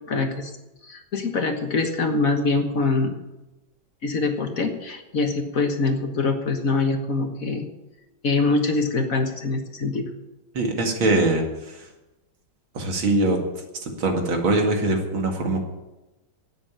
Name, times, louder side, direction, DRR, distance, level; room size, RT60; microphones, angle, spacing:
voice 1, 0.1-0.5 0.8-3.2 4.0-7.7 8.2-10.1, left 3 dB, 45° left, 5 dB, 1.6 m, -24 dB
voice 2, 10.5-11.8 12.7-13.4 13.8-15.6, right 2 dB, 85° right, 2 dB, 2.9 m, -22 dB
11.0 x 9.2 x 8.8 m, 1.0 s
omnidirectional pair, 2.1 m